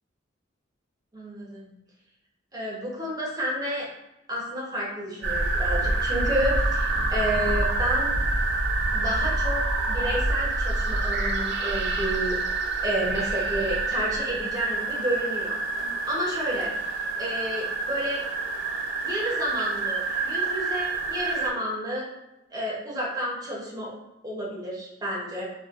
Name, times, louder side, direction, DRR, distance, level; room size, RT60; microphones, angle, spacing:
voice 1, 1.1-1.7 2.5-3.9 4.3-8.1 8.9-12.6 12.8-15.6 16.1-16.7 17.2-18.2 19.0-22.1 22.5-23.9 24.2-25.4, equal, 20° right, -4 dB, 0.8 m, -30 dB
sound 1, 5.2-21.5, right 2 dB, 60° right, 0.4 m, -27 dB
3.1 x 2.2 x 2.4 m, 0.92 s
head